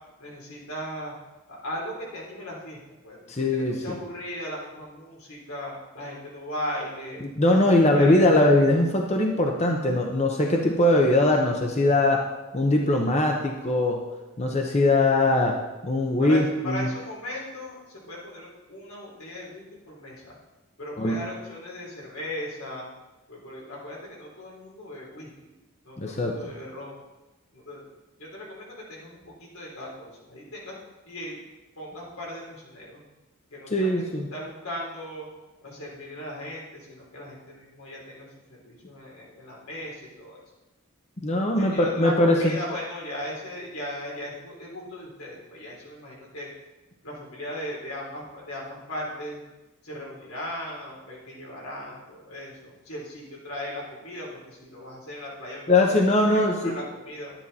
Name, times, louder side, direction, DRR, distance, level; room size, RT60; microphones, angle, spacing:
voice 1, 0.2-1.2 1.5-7.2 7.7-8.3 16.2-20.4 20.8-22.9 23.3-25.3 25.8-27.0 27.5-27.9 28.2-30.8 31.0-31.4 31.8-33.0 33.5-35.3 35.6-40.4 41.6-46.5 47.0-49.4 49.8-55.7 56.3-57.3, left 1 dB, 85° left, -3 dB, 3.7 m, -38 dB
voice 2, 3.3-4.0 7.4-12.3 12.5-14.0 14.4-16.9 21.0-21.2 26.0-26.4 33.7-34.3 41.2-42.5 55.7-56.8, left 1 dB, 30° left, 1 dB, 0.8 m, -21 dB
11.0 x 9.9 x 4.2 m, 1.1 s
head